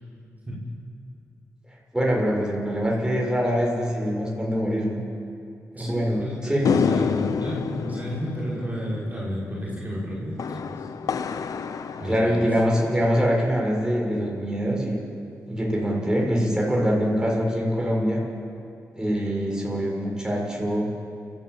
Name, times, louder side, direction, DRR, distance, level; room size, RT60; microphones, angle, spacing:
voice 1, 1.9-5.0 5.7-6.7 12.0-15.0 15.5-18.2 18.9-20.9, equal, 10° right, -2 dB, 6.9 m, -24 dB
voice 2, 5.8-11.2 12.0-12.5, equal, 25° right, -6 dB, 6.2 m, -32 dB
sound 1, 6.6-13.1, left 6 dB, 75° left, 0.9 m, -29 dB
29.0 x 12.5 x 8.5 m, 2.5 s
cardioid pair, 50°, 6 cm